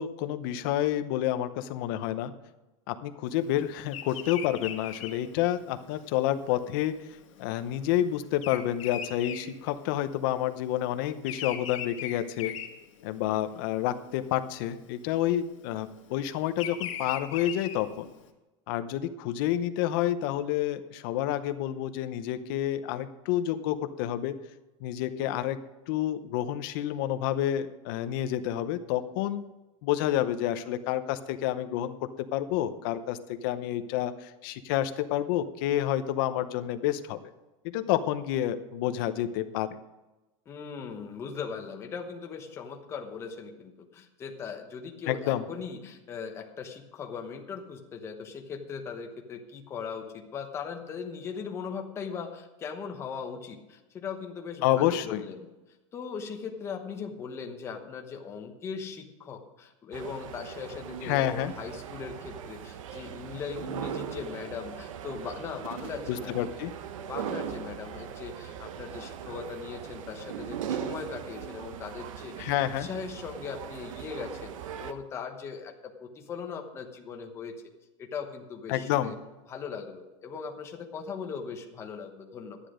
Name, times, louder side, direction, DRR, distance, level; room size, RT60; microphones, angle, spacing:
voice 1, 0.0-2.3 2.9-7.0 7.4-12.5 13.0-18.1 18.7-24.3 24.8-25.6 25.9-29.4 29.8-37.3 37.6-39.8 45.1-45.5 54.6-55.2 61.0-61.5 66.1-66.7 72.4-72.9 78.7-79.1, left 12 dB, 45° left, 11 dB, 0.8 m, -29 dB
Bird vocalization bird call bird song, 3.9-10.3 10.6-13.4 13.9-14.3 15.2-18.2, left 10 dB, 80° left, 1.8 m, -39 dB
voice 2, 40.5-55.5 55.9-66.5 67.0-72.5 72.8-74.5 74.8-77.5 78.0-79.1 79.5-82.6, left 6 dB, 15° left, 3 dB, 1.0 m, -39 dB
sound 1, 59.9-74.9, right 8 dB, 90° right, 1.0 m, -39 dB
12.0 x 9.9 x 5.0 m, 1.1 s
supercardioid pair, 180°, 16 cm